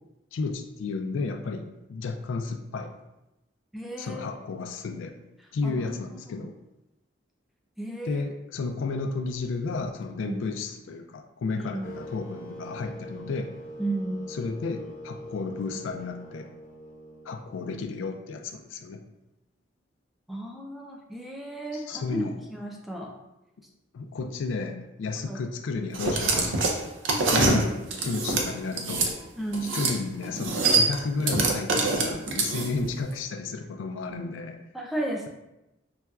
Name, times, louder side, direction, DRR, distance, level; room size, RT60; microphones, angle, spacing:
voice 1, 0.3-2.9 4.0-5.1 5.5-6.5 8.1-13.5 14.4-16.5 17.3-19.0 21.7-22.4 23.9-26.7 27.3-27.7 28.0-29.2 29.7-34.6, left 4 dB, 90° left, 7 dB, 0.3 m, -32 dB
voice 2, 3.7-4.3 5.6-6.5 7.8-8.2 10.2-10.5 11.5-11.9 13.8-14.3 20.3-22.2 22.5-23.1 25.3-25.4 27.4-27.7 29.4-29.7 34.7-35.3, right 2 dB, ahead, -1 dB, 0.3 m, -33 dB
sound 1, 11.8-17.9, equal, 45° left, 0.6 m, -43 dB
sound 2, 25.9-29.1 29.5-30.0 30.2-32.9, right 3 dB, 85° right, 0.5 m, -25 dB
4.0 x 2.2 x 2.3 m, 0.94 s
head